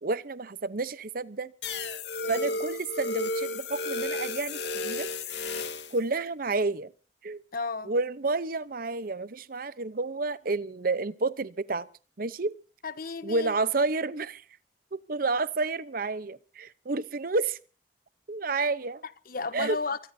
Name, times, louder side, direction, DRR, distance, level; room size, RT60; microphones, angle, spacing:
voice 1, 0.0-1.5 2.3-5.1 5.9-6.9 7.2-7.4 7.9-11.9 12.2-12.5 13.2-14.4 14.9-17.6 18.3-19.0 19.5-19.8, right 3 dB, 55° right, 0.8 m, -30 dB
sound 1, 1.6-6.0, left 2 dB, 75° left, 2.8 m, -33 dB
voice 2, 2.2-2.6 7.5-7.9 12.8-13.6 19.0-20.0, left 4 dB, 55° left, 1.1 m, -34 dB
24.0 x 19.5 x 2.8 m
head